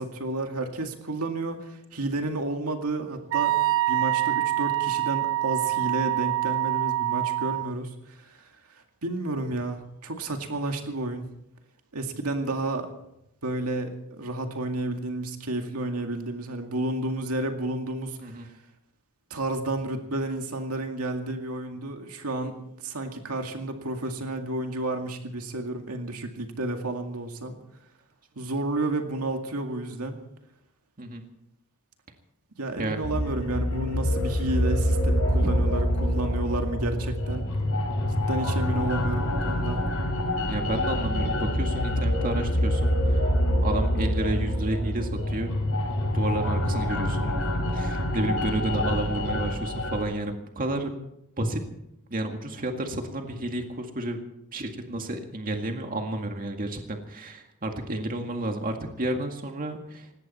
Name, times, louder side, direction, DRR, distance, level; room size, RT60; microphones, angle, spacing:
voice 1, 0.0-3.5 3.9-8.5 9.0-11.3 11.9-12.9 13.4-18.5 19.3-22.6 22.8-27.6 28.4-30.2 32.6-37.5 38.1-39.8, right 2 dB, 85° right, 4 dB, 2.2 m, -31 dB
Wind instrument woodwind instrument, 3.3-7.7, right 15 dB, 60° right, 0.5 m, -25 dB
sound 1, 33.0-50.0, equal, 70° left, 6.0 m, -26 dB
voice 2, 40.4-43.3 43.6-45.5 46.1-50.9 51.4-51.6 52.1-54.2 54.5-60.1, right 1 dB, 40° right, 4 dB, 2.0 m, -31 dB
19.5 x 17.0 x 4.4 m, 0.81 s
head